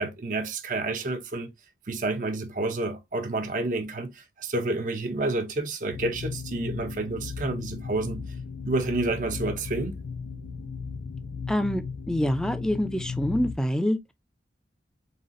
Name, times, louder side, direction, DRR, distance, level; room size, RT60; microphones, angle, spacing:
voice 1, 0.0-1.5 1.9-8.4 8.6-10.0, right 2 dB, 45° right, 0.6 m, -29 dB
sound 1, 5.9-13.6, left 5 dB, 85° left, 0.5 m, -36 dB
voice 2, 11.5-14.1, equal, 5° left, 0.4 m, -26 dB
4.1 x 3.8 x 2.5 m
head